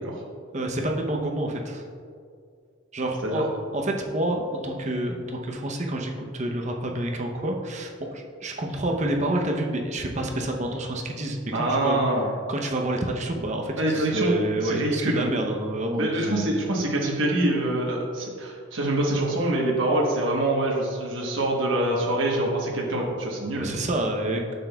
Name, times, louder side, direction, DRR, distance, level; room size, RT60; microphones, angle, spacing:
voice 1, 0.5-1.8 2.9-12.1 12.5-16.4 23.5-24.4, right 1 dB, 35° right, 2 dB, 0.7 m, -28 dB
voice 2, 11.5-12.3 13.8-15.3 16.0-23.8, right 1 dB, 70° right, -2 dB, 1.1 m, -25 dB
9.1 x 7.0 x 2.3 m, 2.2 s
head